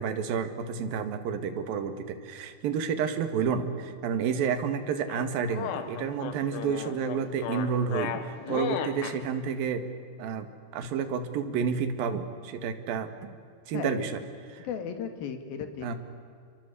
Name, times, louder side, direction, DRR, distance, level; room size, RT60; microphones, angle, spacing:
voice 1, 0.0-9.9 10.2-10.5 10.7-13.3 13.7-14.2 14.5-14.7 15.8-15.9, right 6 dB, 65° right, 8 dB, 3.3 m, -30 dB
sound 1, 5.1-9.2, left 9 dB, 80° left, 3.7 m, -34 dB
voice 2, 13.7-14.1 14.6-16.0, left 7 dB, 65° left, 8 dB, 3.6 m, -35 dB
29.0 x 23.5 x 8.4 m, 2.2 s
omnidirectional pair, 4.8 m